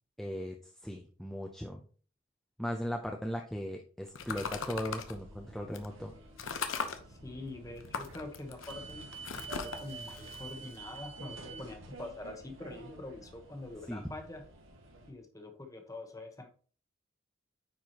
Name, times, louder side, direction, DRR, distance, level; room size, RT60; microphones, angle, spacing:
voice 1, 0.2-1.8 2.6-6.1 13.9-14.0, equal, ahead, 1 dB, 0.5 m, -38 dB
sound 1, 4.1-5.1 5.7-5.9 6.4-7.0 7.8-11.3, left 5 dB, 75° left, 0.8 m, -39 dB
sound 2, 4.2-15.1, right 3 dB, 80° right, 1.7 m, -49 dB
voice 2, 7.1-9.1 9.6-14.4 15.1-16.5, left 2 dB, 15° left, 4 dB, 1.1 m, -45 dB
9.3 x 4.7 x 2.9 m, 0.42 s
head